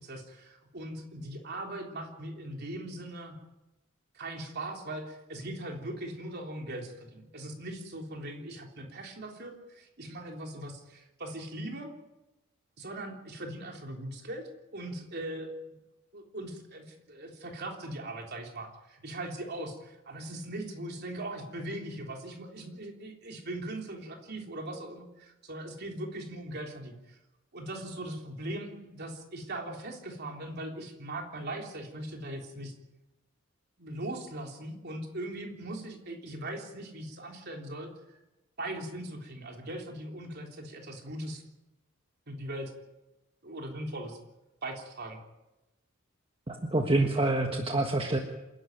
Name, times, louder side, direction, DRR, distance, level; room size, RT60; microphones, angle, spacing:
voice 1, 0.0-3.4 4.1-11.9 12.8-15.8 16.1-27.2 27.5-32.7 33.8-38.2 38.6-41.4 42.3-42.7 43.4-44.2 44.6-45.2, right 1 dB, 50° right, 2 dB, 3.5 m, -40 dB
voice 2, 46.5-48.2, right 2 dB, 25° right, 3 dB, 1.5 m, -27 dB
27.5 x 11.0 x 9.3 m, 1.0 s
head